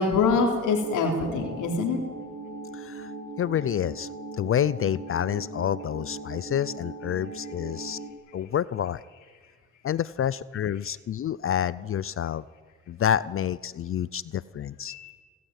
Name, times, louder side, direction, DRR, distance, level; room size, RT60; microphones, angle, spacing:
voice 1, 0.0-2.0 14.9-15.1, left 4 dB, 90° left, 0 dB, 3.5 m, -24 dB
sound 1, 0.7-8.1, right 3 dB, 60° right, 3.7 m, -39 dB
voice 2, 2.7-3.1 3.4-4.1 4.3-8.0 8.3-9.0 9.8-12.4 12.9-14.9, left 10 dB, 45° left, 19 dB, 0.5 m, -28 dB
25.5 x 14.0 x 9.2 m, 1.5 s
cardioid pair, 90°, 30 cm